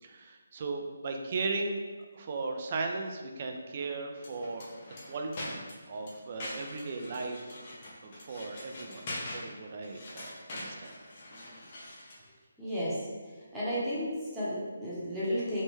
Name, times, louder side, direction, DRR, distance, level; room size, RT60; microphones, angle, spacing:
voice 1, 0.0-1.8 2.1-5.6 5.9-7.7 8.0-9.1 9.3-10.9, right 3 dB, 40° right, 3 dB, 0.3 m, -37 dB
sound 1, 4.2-12.3, left 1 dB, 35° left, 0.6 m, -44 dB
voice 2, 12.6-13.0 13.4-15.6, equal, 5° right, -11 dB, 0.8 m, -33 dB
3.1 x 2.1 x 3.0 m, 1.4 s
figure-of-eight pair, 155°, 0 cm